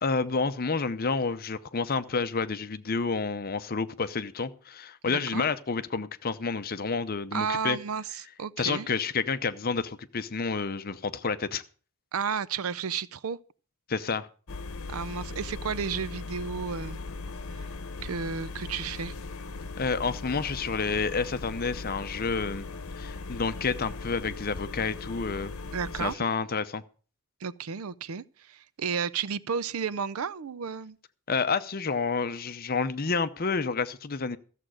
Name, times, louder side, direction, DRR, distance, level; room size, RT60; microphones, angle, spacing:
voice 1, 0.0-7.8 8.6-11.6 13.9-14.3 19.8-22.6 23.0-25.5 26.0-26.8 31.3-34.4, left 4 dB, 45° left, 0.7 m, -29 dB
voice 2, 5.1-5.4 7.3-8.9 12.1-13.4 14.9-17.0 18.0-19.1 25.7-26.2 27.4-31.0, right 6 dB, 80° right, 0.5 m, -32 dB
sound 1, 14.5-26.2, left 3 dB, 75° left, 1.0 m, -39 dB
14.0 x 7.5 x 6.3 m
head